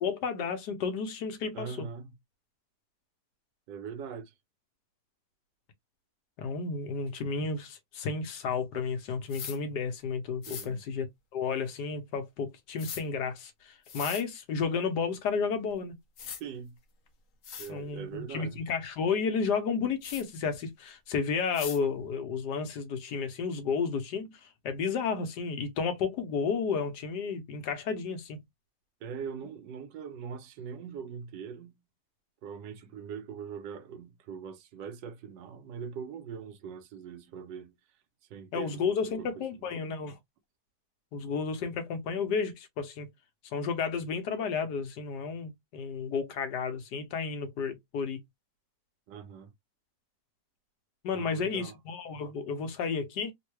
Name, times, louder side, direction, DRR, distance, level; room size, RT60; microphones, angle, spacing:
voice 1, 0.0-1.9 6.4-11.1 11.3-16.0 17.7-28.4 38.5-40.2 41.1-43.1 43.4-48.2 51.0-53.3, left 5 dB, 75° left, 1.4 m, -32 dB
voice 2, 1.5-2.1 3.7-4.3 10.5-10.8 16.4-16.8 17.6-18.6 29.0-31.8 32.4-37.7 38.3-39.7 49.1-49.5 51.1-51.7, right 7 dB, 80° right, 1.3 m, -42 dB
sound 1, 9.3-9.6 10.4-10.7 12.8-13.0 13.8-14.2 15.7-15.8 16.2-16.4 17.1-17.2 17.4-17.7 20.0-20.2 21.5-21.8, left 7 dB, 55° left, 1.0 m, -40 dB
3.6 x 2.1 x 3.1 m
omnidirectional pair, 1.9 m